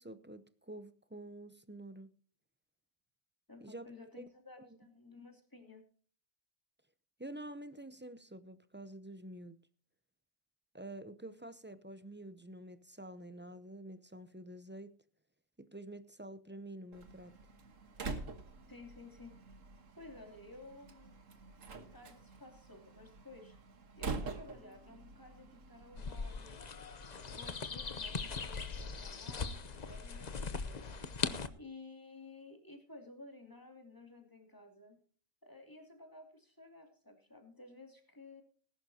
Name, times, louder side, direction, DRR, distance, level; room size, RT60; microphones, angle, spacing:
voice 1, 0.0-2.1 3.6-3.9 4.2-4.3 7.2-9.6 10.7-14.9 15.6-17.4, right 1 dB, 15° right, 0.4 m, -48 dB
voice 2, 3.5-5.8 18.7-19.4 20.0-21.2 21.9-23.6 24.0-26.7 27.2-31.0 31.6-35.0 35.4-38.4, left 2 dB, 15° left, 2.7 m, -54 dB
Slam, 16.9-26.4, right 4 dB, 75° right, 1.8 m, -46 dB
sound 1, 26.0-31.5, left 4 dB, 35° left, 0.8 m, -40 dB
19.5 x 11.0 x 2.8 m
omnidirectional pair, 1.4 m